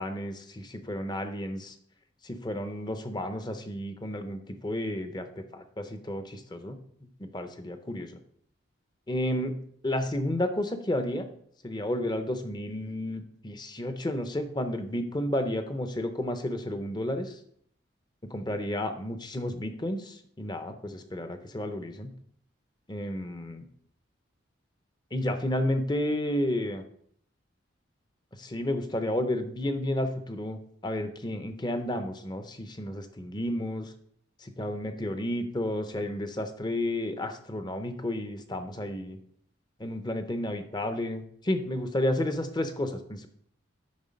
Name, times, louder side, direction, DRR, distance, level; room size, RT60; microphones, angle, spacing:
voice 1, 0.0-1.7 2.2-6.8 7.2-8.2 9.1-9.6 9.8-11.3 11.6-17.4 18.3-22.1 22.9-23.6 25.1-26.8 28.4-33.9 34.4-39.2 39.8-43.3, left 1 dB, 20° left, 8 dB, 0.7 m, -32 dB
9.6 x 3.9 x 5.2 m, 0.65 s
head